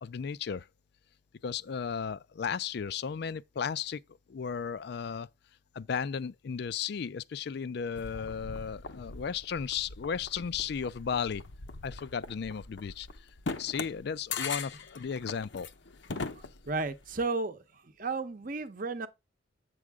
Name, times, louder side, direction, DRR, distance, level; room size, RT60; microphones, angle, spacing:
voice 1, 0.0-0.7 1.4-4.0 4.3-5.3 5.7-11.4 11.8-13.1 13.6-15.7, left 6 dB, 60° left, 0.4 m, -35 dB
sound 1, 7.9-17.1, left 4 dB, 75° left, 0.8 m, -41 dB
voice 2, 16.3-17.6 18.0-19.1, right 3 dB, 45° right, 0.8 m, -33 dB
8.3 x 6.3 x 3.5 m
head